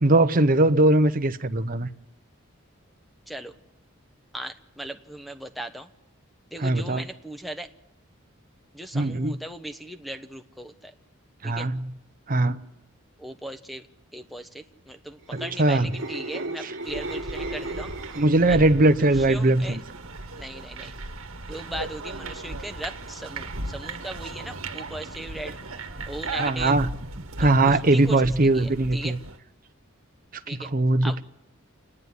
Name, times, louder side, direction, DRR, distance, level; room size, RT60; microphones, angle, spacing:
voice 1, 0.0-1.9 6.6-7.0 8.9-9.4 11.4-11.9 12.3-12.6 15.3-15.9 16.6-16.7 18.2-19.8 26.3-26.9 27.4-29.2 30.5-31.2, right 2 dB, 40° right, 0.9 m, -21 dB
voice 2, 4.3-5.9 6.5-7.7 8.7-10.9 11.4-11.7 13.2-13.8 14.1-17.9 18.5-18.6 19.0-19.8 20.4-20.9 21.5-25.6 26.1-26.8 27.4-29.1 30.5-30.7 31.0-31.2, right 1 dB, ahead, 1.1 m, -38 dB
sound 1, 15.1-18.6 18.9-19.2, right 2 dB, 60° right, 1.5 m, -35 dB
sound 2, 16.8-29.4, right 2 dB, 85° right, 1.6 m, -37 dB
28.5 x 9.9 x 9.5 m
head